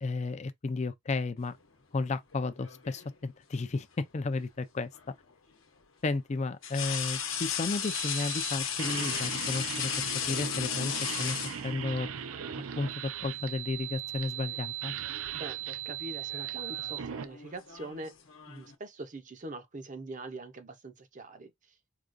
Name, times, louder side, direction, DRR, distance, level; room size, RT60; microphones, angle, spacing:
voice 1, 0.0-1.6 1.9-4.9 6.0-9.9 10.3-10.9 11.2-12.1 12.8-14.9, left 3 dB, 35° left, 0.4 m, -33 dB
sound 1, 2.3-3.2 4.9-5.1 6.6-12.1 13.3-13.5 13.9-14.6 14.9-15.3 16.1-18.7, left 8 dB, 70° left, 0.9 m, -36 dB
sound 2, 7.8-17.3, right 9 dB, 85° right, 0.4 m, -38 dB
voice 2, 15.3-18.1 18.5-21.5, right 2 dB, 35° right, 0.6 m, -43 dB
4.8 x 2.3 x 2.5 m
head